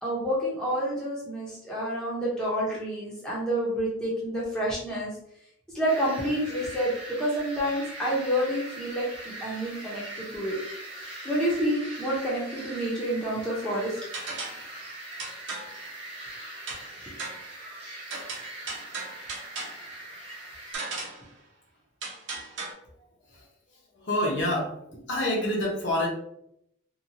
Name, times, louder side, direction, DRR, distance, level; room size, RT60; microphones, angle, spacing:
voice 1, 0.0-5.1 5.7-6.9 7.2-10.6 11.2-13.9 17.1-17.2, equal, 5° left, -7 dB, 0.7 m, -28 dB
sound 1, 5.9-20.8, right 1 dB, 30° right, 1.1 m, -42 dB
sound 2, 14.1-14.7 15.2-15.8 16.7-16.9 17.2-17.5 18.1-19.9 20.7-21.3 22.0-22.7, right 3 dB, 75° right, 0.8 m, -36 dB
voice 2, 24.0-24.8 25.1-26.1, left 1 dB, 65° left, -2 dB, 0.9 m, -27 dB
2.8 x 2.3 x 2.6 m, 0.75 s
head